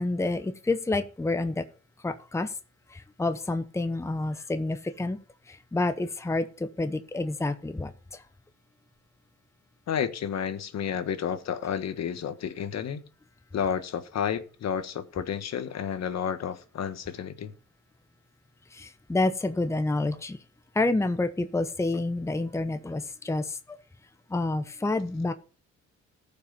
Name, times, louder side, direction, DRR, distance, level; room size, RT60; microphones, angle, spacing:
voice 1, 0.0-1.6 2.0-2.5 2.9-5.2 5.5-8.2 18.7-20.4 20.7-23.8 24.3-25.3, left 2 dB, 10° left, 0.8 m, -29 dB
voice 2, 9.9-13.0 13.5-17.5, left 8 dB, 60° left, 1.3 m, -31 dB
14.0 x 5.7 x 5.2 m
cardioid pair, 90°, 30 cm